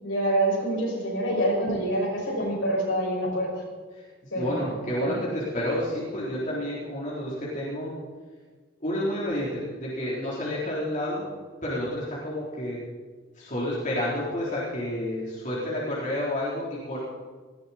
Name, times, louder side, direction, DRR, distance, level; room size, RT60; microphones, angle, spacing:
voice 1, 0.0-3.6 4.3-4.6 5.0-5.2, right 1 dB, 75° left, -3 dB, 6.5 m, -26 dB
voice 2, 3.9-7.9 8.8-11.3 11.6-12.8 13.4-17.0, left 1 dB, 40° left, -7 dB, 3.9 m, -30 dB
18.5 x 17.0 x 4.4 m, 1.4 s
head